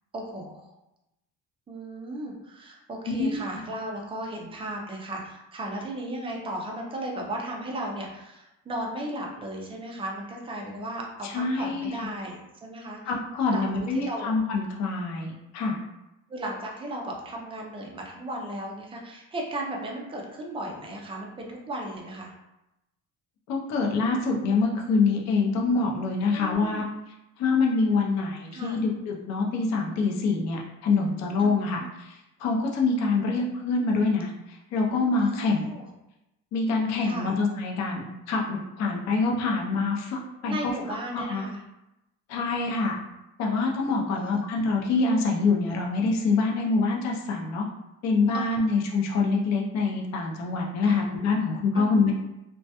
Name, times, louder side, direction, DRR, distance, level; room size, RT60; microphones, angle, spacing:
voice 1, 0.1-0.7 1.7-13.1 13.5-13.7 13.9-14.3 16.3-22.3 26.3-26.8 28.5-28.8 31.4-31.9 35.2-35.9 37.0-37.3 40.4-41.6 44.1-44.4 48.3-48.6 50.8-51.0 51.7-52.1, right 1 dB, 15° right, -1 dB, 0.3 m, -36 dB
voice 2, 11.2-12.1 13.0-15.8 23.5-26.8 27.4-34.3 34.7-35.7 36.5-40.7 41.1-41.4 42.3-43.0 43.4-47.6 48.0-52.1, left 4 dB, 55° left, -1 dB, 0.5 m, -25 dB
2.2 x 2.1 x 2.7 m, 0.92 s
cardioid pair, 140°, 33 cm